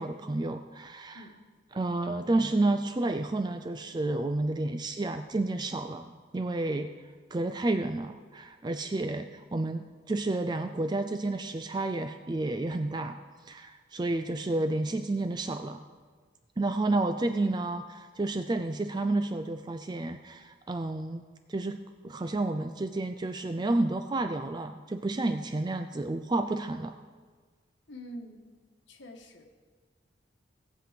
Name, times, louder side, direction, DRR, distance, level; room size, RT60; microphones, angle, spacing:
voice 1, 0.0-1.2 1.7-6.9 7.3-13.2 13.5-15.8 16.6-21.2 21.5-27.0, right 2 dB, 20° right, 8 dB, 0.4 m, -30 dB
voice 2, 27.9-28.5 28.9-29.4, equal, 70° left, 2 dB, 1.5 m, -45 dB
17.5 x 7.6 x 5.0 m, 1.5 s
head